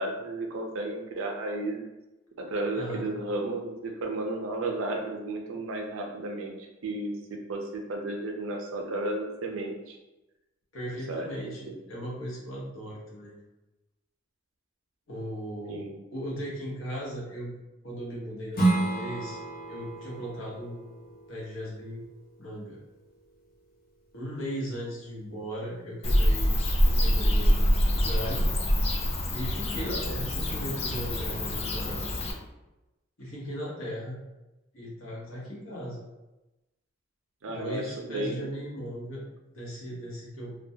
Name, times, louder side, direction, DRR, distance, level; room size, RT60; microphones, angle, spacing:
voice 1, 0.0-1.8 2.4-6.5 6.8-7.1 7.5-10.0 11.1-11.8 15.7-15.9 37.4-38.5, right 2 dB, 80° right, 2 dB, 0.5 m, -33 dB
voice 2, 10.7-13.4 15.1-15.8 16.1-17.5 17.8-19.4 19.7-20.8 21.3-22.0 22.4-22.8 24.1-26.6 26.8-27.6 27.9-28.5 29.3-32.0 33.2-34.2 34.7-36.0 37.5-39.2 39.5-40.5, equal, 80° left, -5 dB, 0.9 m, -37 dB
Strum, 18.5-23.7, right 2 dB, 50° left, 0.7 m, -32 dB
Bird / Cricket, 26.0-32.3, equal, 30° left, 0.3 m, -25 dB
2.2 x 2.1 x 2.6 m, 1.0 s
head